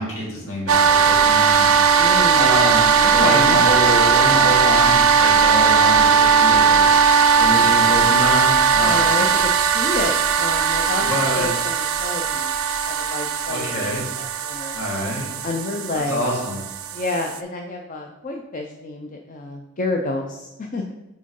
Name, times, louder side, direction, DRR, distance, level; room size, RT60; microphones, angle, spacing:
voice 1, 0.0-1.7 2.3-6.9 7.4-9.1 11.0-11.5 13.5-14.0 14.7-15.3 16.0-16.6, equal, 65° left, -5 dB, 2.4 m, -26 dB
sound 1, 0.7-17.4, right 6 dB, 65° right, 0.5 m, -18 dB
voice 2, 2.0-2.6 3.0-3.6 8.8-12.5 12.9-14.7 15.4-16.2 16.9-20.8, left 2 dB, 35° left, 2 dB, 0.5 m, -29 dB
8.9 x 3.7 x 3.7 m, 1.1 s
head